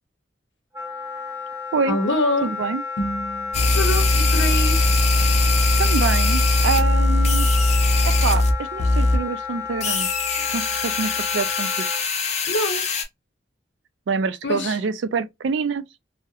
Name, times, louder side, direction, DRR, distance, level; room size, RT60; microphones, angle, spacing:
Wind instrument woodwind instrument, 0.7-12.0, left 5 dB, 15° right, 0.7 m, -31 dB
voice 1, 1.9-2.5 3.0-4.8 12.5-12.9 14.4-14.8, left 1 dB, 80° left, 0.7 m, -25 dB
voice 2, 2.4-2.8 5.8-7.5 8.0-10.2 10.5-11.9 14.1-15.8, right 5 dB, 85° right, 0.4 m, -26 dB
sound 1, 3.5-8.5 8.8-9.2 9.8-13.0, left 2 dB, 35° left, 0.4 m, -20 dB
2.7 x 2.0 x 2.3 m
head